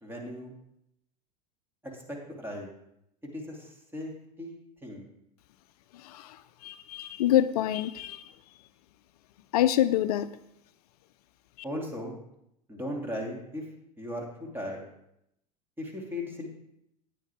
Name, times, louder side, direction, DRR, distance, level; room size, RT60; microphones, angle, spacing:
voice 1, 0.0-0.5 1.8-2.7 3.3-4.1 4.4-5.0 11.6-12.2 12.7-13.6 14.0-14.8 15.8-16.5, left 1 dB, 10° right, 0 dB, 2.7 m, -37 dB
voice 2, 5.9-8.3 9.5-10.3, left 12 dB, 70° left, 13 dB, 0.5 m, -26 dB
9.3 x 9.1 x 3.5 m, 0.80 s
hypercardioid pair, 85°, 20 cm